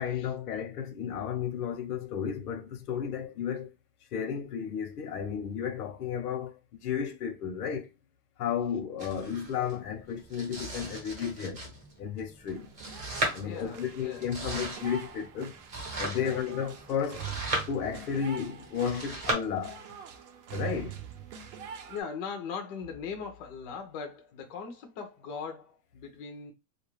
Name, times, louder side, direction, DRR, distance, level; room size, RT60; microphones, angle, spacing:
voice 1, 0.0-3.7 4.1-7.9 8.4-11.6 12.0-12.7 13.3-15.6 16.0-17.3 17.7-19.8 20.5-21.0, left 7 dB, 90° left, 0.9 m, -33 dB
Domestic sounds home sounds, 9.0-19.3, right 2 dB, 15° right, 0.9 m, -38 dB
sound 1, 12.5-22.0, right 8 dB, 50° right, 0.7 m, -44 dB
voice 2, 13.4-14.3 16.1-16.4 21.5-21.6 21.9-26.5, left 6 dB, 30° left, 0.4 m, -40 dB
2.3 x 2.3 x 3.1 m
supercardioid pair, 155°, 44 cm